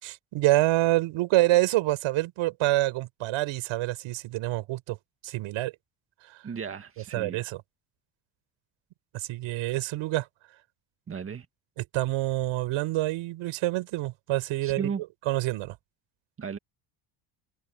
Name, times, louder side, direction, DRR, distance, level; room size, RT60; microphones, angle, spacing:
voice 1, 0.0-5.0 5.2-5.7 6.2-6.4 7.1-7.6 9.1-10.3 11.8-14.9 15.3-15.8, right 17 dB, 80° right, 5.2 m, -27 dB
voice 2, 6.4-7.4 11.1-11.5 14.6-15.0 16.4-16.6, right 6 dB, 25° right, 2.1 m, -35 dB
cardioid pair, 155°, 48 cm